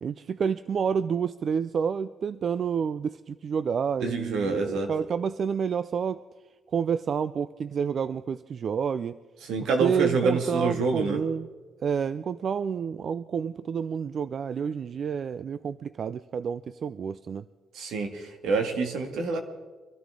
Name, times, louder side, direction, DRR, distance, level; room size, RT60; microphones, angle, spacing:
voice 1, 0.0-6.2 6.7-9.2 9.6-11.5 11.8-17.5, right 7 dB, 55° right, 14 dB, 0.4 m, -29 dB
voice 2, 4.0-4.9 9.4-11.2 17.7-19.4, right 4 dB, 80° right, 4 dB, 2.0 m, -27 dB
24.5 x 13.0 x 3.8 m, 1.3 s
cardioid pair, 90°, 0 cm